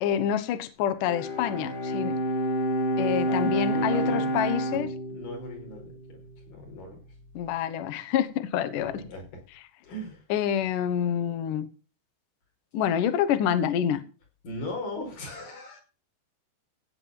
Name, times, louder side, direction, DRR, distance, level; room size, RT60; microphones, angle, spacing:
voice 1, 0.0-2.2 3.0-4.9 7.3-8.9 10.3-11.7 12.7-14.0, left 9 dB, 90° left, 9 dB, 1.8 m, -27 dB
Bowed string instrument, 1.0-6.5, equal, 20° left, 1.3 m, -29 dB
voice 2, 2.9-4.4 5.1-6.2 6.5-7.0 8.8-9.4 9.8-10.2 14.4-15.8, left 2 dB, 45° left, 1 dB, 6.4 m, -39 dB
16.5 x 5.5 x 7.7 m, 0.35 s
omnidirectional pair, 5.6 m